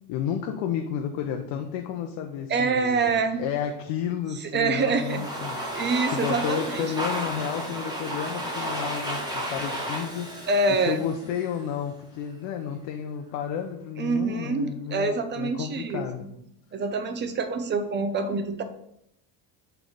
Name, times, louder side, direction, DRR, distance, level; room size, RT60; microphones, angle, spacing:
voice 1, 0.1-3.1 3.4-10.5 10.8-16.3, left 8 dB, 80° left, 3 dB, 0.7 m, -32 dB
voice 2, 2.5-3.4 4.4-5.2 5.7-6.9 10.5-11.0 14.0-16.1 16.7-18.6, right 3 dB, 25° right, 8 dB, 0.5 m, -26 dB
Domestic sounds home sounds, 4.8-11.7, equal, 10° right, 1.2 m, -33 dB
6.1 x 3.4 x 5.0 m, 0.76 s
cardioid pair, 155°, 44 cm